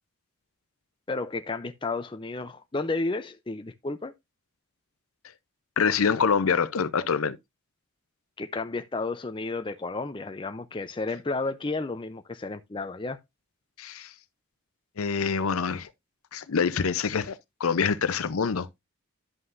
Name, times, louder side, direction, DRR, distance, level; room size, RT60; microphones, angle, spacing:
voice 1, 1.1-4.1 8.4-13.2, left 3 dB, 20° left, 0.4 m, -32 dB
voice 2, 5.8-7.4 13.8-14.1 15.0-15.9 16.3-18.7, left 6 dB, 80° left, 0.6 m, -25 dB
11.5 x 5.5 x 2.5 m
head